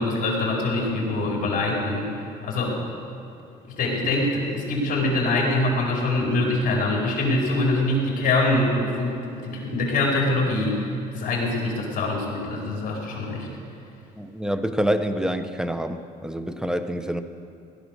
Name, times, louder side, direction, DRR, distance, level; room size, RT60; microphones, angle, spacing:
voice 1, 0.0-2.1 2.4-2.8 3.8-13.5, left 2 dB, 55° left, -2 dB, 4.8 m, -24 dB
voice 2, 14.2-17.2, equal, 5° right, 10 dB, 0.9 m, -26 dB
17.5 x 12.0 x 6.8 m, 2.7 s
cardioid pair, 110°, 17 cm